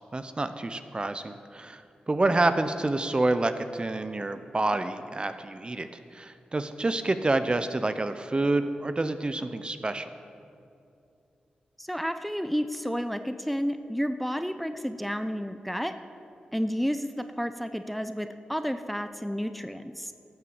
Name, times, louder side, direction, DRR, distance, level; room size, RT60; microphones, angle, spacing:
voice 1, 0.1-5.9 6.1-10.1, right 2 dB, 30° right, 10 dB, 0.7 m, -28 dB
voice 2, 11.8-15.9 16.5-20.1, equal, ahead, 9 dB, 0.6 m, -31 dB
13.0 x 6.8 x 7.1 m, 2.6 s
cardioid pair, 45°, 3 cm